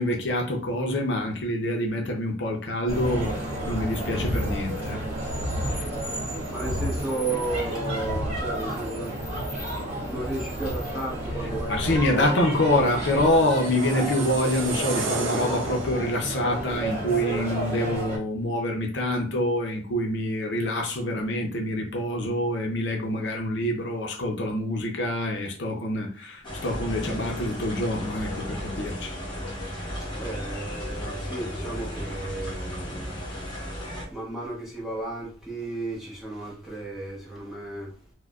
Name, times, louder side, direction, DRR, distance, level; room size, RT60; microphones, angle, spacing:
voice 1, 0.0-3.3 3.6-5.0 11.7-29.1, left 1 dB, 60° left, 0.6 m, -26 dB
sound 1, 2.9-18.2, right 1 dB, 30° right, 1.3 m, -31 dB
voice 2, 6.5-9.1 10.0-12.5 30.1-33.2 34.1-37.9, right 2 dB, ahead, 0.9 m, -33 dB
Long Flashback Transition, 13.1-16.3, right 4 dB, 70° right, 0.6 m, -33 dB
sound 2, 26.4-34.0, equal, 25° left, 0.9 m, -34 dB
4.5 x 2.1 x 2.4 m
head